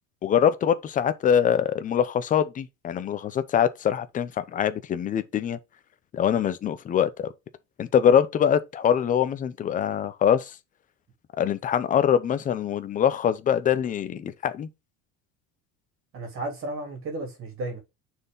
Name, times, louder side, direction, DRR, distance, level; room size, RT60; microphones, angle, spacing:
voice 1, 0.2-5.6 6.1-7.3 7.8-10.5 11.4-14.7, left 9 dB, 20° left, 0.6 m, -23 dB
voice 2, 16.1-17.8, right 2 dB, 35° right, 3.2 m, -33 dB
6.6 x 4.6 x 3.8 m
cardioid pair, 175°, 39 cm